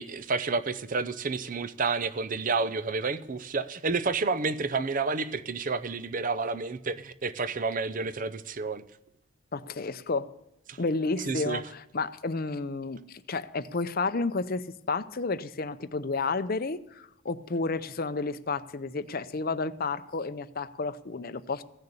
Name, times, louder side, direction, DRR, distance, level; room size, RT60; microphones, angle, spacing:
voice 1, 0.0-8.8 10.7-10.8 11.3-11.6, right 4 dB, 35° right, 14 dB, 0.6 m, -30 dB
voice 2, 9.5-10.3 10.8-21.6, left 3 dB, 40° left, 13 dB, 0.6 m, -31 dB
16.0 x 6.7 x 8.5 m, 0.83 s
head